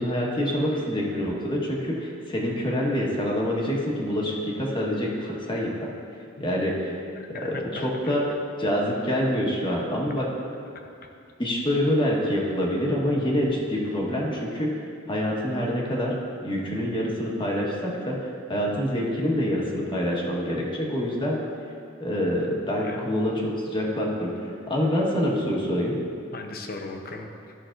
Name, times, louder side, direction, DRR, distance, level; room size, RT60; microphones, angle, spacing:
voice 1, 0.0-5.9 6.4-6.9 7.4-8.2 8.6-10.2 11.4-14.7 15.1-16.2 16.4-21.4 22.0-23.3 23.6-26.0, equal, 25° left, -3 dB, 1.3 m, -26 dB
voice 2, 7.2-8.1 22.8-23.1 26.3-27.5, left 3 dB, 50° left, 3 dB, 0.8 m, -38 dB
13.5 x 5.9 x 2.5 m, 2.5 s
head